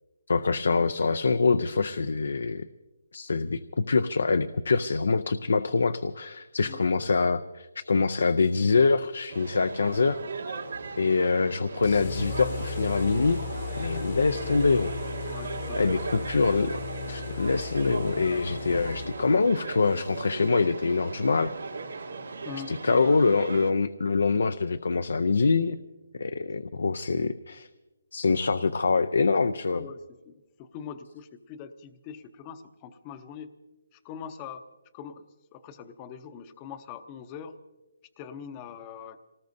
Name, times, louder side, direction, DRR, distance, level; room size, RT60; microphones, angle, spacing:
voice 1, 0.3-2.7 3.1-10.2 11.0-13.4 13.8-14.9 15.7-16.8 17.1-21.5 22.7-25.8 26.1-27.7 28.1-29.9, left 4 dB, 80° left, 12 dB, 0.5 m, -25 dB
sound 1, 9.3-23.7, right 4 dB, 85° right, 2.1 m, -38 dB
sound 2, 11.8-19.5, left 5 dB, 50° left, 1.1 m, -36 dB
voice 2, 15.3-15.8 22.4-23.4 29.7-33.5 33.9-34.6 34.9-35.3 35.5-37.6 38.2-39.2, left 7 dB, 25° left, 10 dB, 0.7 m, -43 dB
26.5 x 19.0 x 2.7 m, 1.1 s
hypercardioid pair, 160°, 0 cm